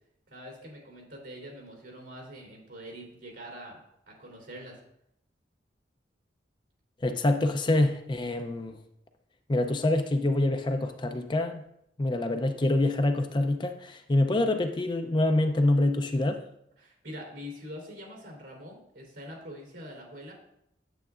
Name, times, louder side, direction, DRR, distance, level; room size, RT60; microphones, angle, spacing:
voice 1, 0.3-3.8 4.1-4.8 16.8-20.3, equal, 80° right, -1 dB, 3.2 m, -44 dB
voice 2, 7.0-8.8 9.5-11.6 12.0-16.4, left 2 dB, 25° left, 7 dB, 0.5 m, -26 dB
9.1 x 8.1 x 2.4 m, 0.76 s
head